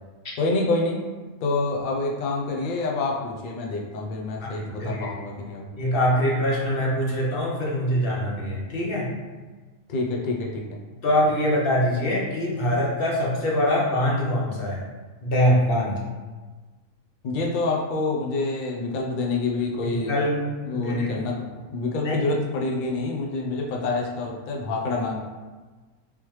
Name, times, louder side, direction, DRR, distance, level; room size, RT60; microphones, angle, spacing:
voice 1, 0.4-1.0 1.4-5.7 9.9-10.6 17.2-20.1 20.7-25.2, left 3 dB, 85° left, -1 dB, 0.4 m, -27 dB
voice 2, 4.4-5.1 5.8-9.1 11.0-14.8 15.2-16.0 19.8-21.1 22.0-22.2, equal, 45° left, -4 dB, 0.9 m, -24 dB
3.4 x 3.1 x 3.1 m, 1.3 s
omnidirectional pair, 1.5 m